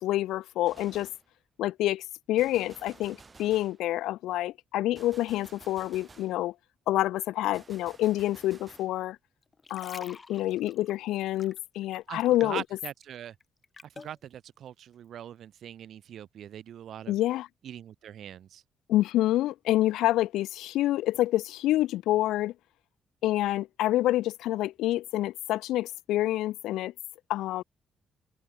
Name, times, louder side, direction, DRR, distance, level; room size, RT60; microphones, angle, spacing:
voice 1, 0.0-1.1 1.6-6.5 6.9-9.2 9.7-12.6 17.1-17.5 18.9-22.5 23.2-26.9 27.3-27.6, left 15 dB, 90° left, 0.4 m, -27 dB
Gunshot gunfire, 0.7-1.3 2.4-3.8 5.0-6.4 7.5-9.0, right 4 dB, 30° right, 3.7 m, -53 dB
sound 1, 9.4-12.5 12.8-14.2 14.8-14.9, left 4 dB, 30° left, 4.0 m, -49 dB
voice 2, 12.1-13.3 13.8-17.2 17.6-18.6, right 10 dB, 65° right, 0.9 m, -42 dB
cardioid pair, 90°, 0 cm